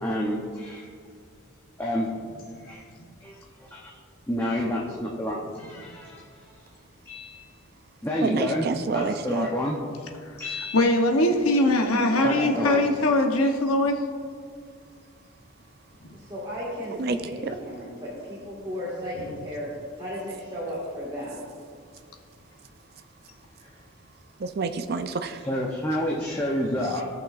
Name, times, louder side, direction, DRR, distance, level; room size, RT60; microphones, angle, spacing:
voice 1, 0.0-0.9 1.8-2.1 2.6-2.8 3.2-3.9 4.3-6.2 7.1-7.5 8.0-8.7 8.9-9.8 10.4-10.8 12.2-12.8 23.6-23.7 25.4-27.0, left 1 dB, 10° left, -3 dB, 0.7 m, -29 dB
voice 2, 8.2-9.5 16.9-17.6 24.4-25.5 26.9-27.0, right 4 dB, 45° right, 9 dB, 0.4 m, -28 dB
voice 3, 10.7-13.9 16.0-16.1, left 1 dB, 85° left, 4 dB, 0.9 m, -21 dB
voice 4, 12.2-12.5 16.1-19.7 20.0-21.4, equal, 20° right, -8 dB, 1.7 m, -35 dB
17.0 x 5.9 x 2.5 m, 2.1 s
head